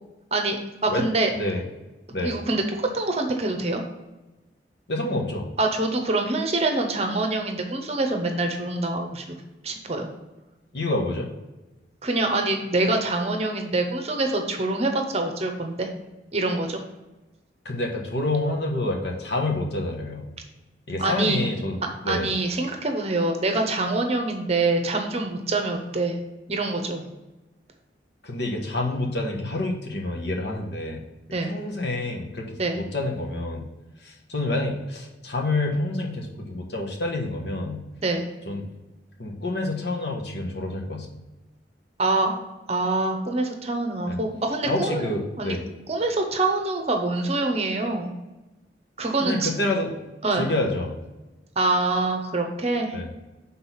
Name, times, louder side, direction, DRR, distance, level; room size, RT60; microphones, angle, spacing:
voice 1, 0.8-1.3 2.2-3.8 5.6-9.4 9.6-10.1 12.0-15.9 16.3-16.8 21.0-21.4 22.1-26.2 26.5-27.0 31.3-31.5 32.6-32.8 38.0-38.3 42.0-42.4 42.7-45.1 45.4-45.6 45.9-48.1 49.0-49.5 50.2-50.5 51.6-53.0, right 2 dB, 35° right, 4 dB, 0.8 m, -25 dB
voice 2, 4.9-5.5 10.7-11.3 17.6-20.2 20.9-21.8 22.0-22.3 28.2-31.0 31.4-33.7 34.0-37.8 38.5-38.7 39.2-41.1 44.1-44.2 44.6-45.6 49.2-49.9 50.3-51.0 52.9-53.1, left 2 dB, 70° left, 0 dB, 1.2 m, -28 dB
6.0 x 3.9 x 5.6 m, 1.1 s
head